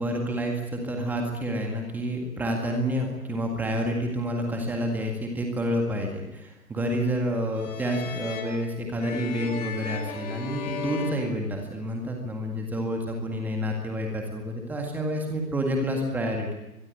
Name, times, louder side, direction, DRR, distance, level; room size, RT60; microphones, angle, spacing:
voice 1, 0.0-16.6, equal, 5° right, 2 dB, 1.9 m, -29 dB
sound 1, 7.5-12.1, left 5 dB, 25° left, 3.4 m, -37 dB
24.5 x 21.5 x 8.5 m, 0.94 s
figure-of-eight pair, 145°, 46 cm